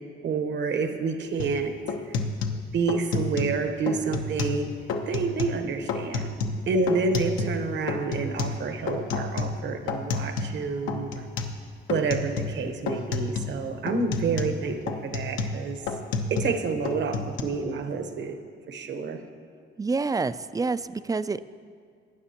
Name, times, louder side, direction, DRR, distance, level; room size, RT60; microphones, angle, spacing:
voice 1, 0.2-1.8 2.7-4.7 5.0-6.3 6.7-11.2 11.9-15.8 16.3-18.4 18.7-19.2, right 4 dB, 65° right, 7 dB, 1.1 m, -28 dB
sound 1, 1.4-1.6 1.9-3.6 3.9-4.6 4.9-5.6 5.9-7.6 7.9-10.6 10.9-11.6 11.9-12.6 12.9-13.6 13.9-16.6 16.8-17.4, left 4 dB, 85° left, 0.9 m, -30 dB
voice 2, 19.8-21.5, right 4 dB, 20° right, 14 dB, 0.3 m, -27 dB
18.5 x 9.5 x 2.9 m, 2.1 s
cardioid pair, 90°, 20 cm